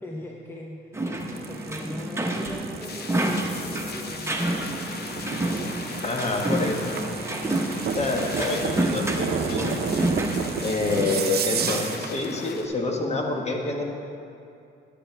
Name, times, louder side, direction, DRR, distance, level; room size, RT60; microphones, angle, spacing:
voice 1, 0.0-4.8, left 1 dB, 10° left, -1 dB, 0.7 m, -40 dB
sound 1, 0.9-11.8, right 1 dB, 15° right, 1.1 m, -29 dB
sound 2, 1.2-12.1, right 7 dB, 55° right, 0.6 m, -33 dB
sound 3, 2.8-12.7, left 5 dB, 55° left, 0.8 m, -39 dB
voice 2, 6.0-6.9 7.9-9.8 10.6-13.8, left 3 dB, 35° left, 1 dB, 1.4 m, -27 dB
9.9 x 9.9 x 3.4 m, 2.6 s
cardioid pair, 90°, 20 cm